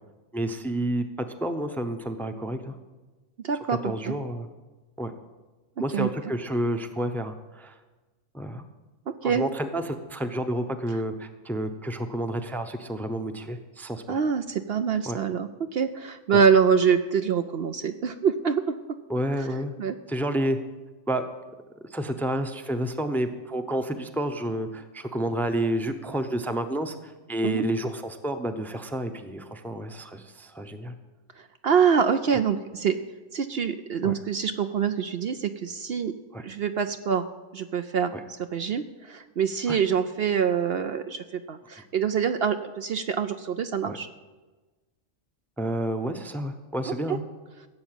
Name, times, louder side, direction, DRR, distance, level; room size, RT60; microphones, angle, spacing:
voice 1, 0.3-2.8 3.8-4.5 5.0-5.1 5.8-7.8 8.3-8.7 9.2-14.2 15.1-15.2 16.3-16.4 19.1-19.7 20.1-20.6 21.1-21.2 21.8-30.9 34.0-34.1 36.3-36.4 38.1-38.2 39.7-39.8 43.8-44.0 45.6-47.2, right 1 dB, ahead, 7 dB, 0.7 m, -30 dB
voice 2, 3.4-4.1 5.9-6.1 9.1-9.4 14.1-18.8 19.8-20.0 27.4-27.6 31.4-33.0 33.3-36.1 36.4-37.2 37.5-38.1 38.5-44.1 46.9-47.2, right 7 dB, 60° right, 8 dB, 0.8 m, -25 dB
16.0 x 7.1 x 9.1 m, 1.2 s
omnidirectional pair, 1.3 m